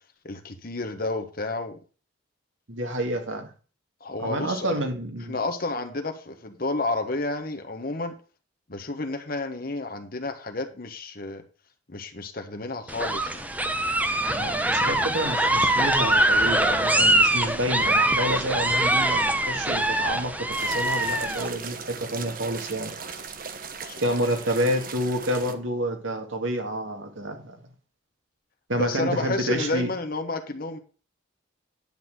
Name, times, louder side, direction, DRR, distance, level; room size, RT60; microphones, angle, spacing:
voice 1, 0.2-1.8 4.0-4.8 5.3-8.1 8.7-11.4 11.9-13.5 23.8-24.0 28.8-30.8, left 2 dB, 50° left, 6 dB, 1.4 m, -31 dB
voice 2, 2.7-3.5 4.2-5.4 14.3-22.9 24.0-27.7 28.7-29.9, right 1 dB, 80° right, 4 dB, 2.1 m, -29 dB
sound 1, 12.9-21.5, right 1 dB, 10° right, 0.8 m, -23 dB
sound 2, 20.5-25.5, right 5 dB, 45° right, 1.0 m, -38 dB
10.5 x 4.2 x 7.8 m, 0.37 s
head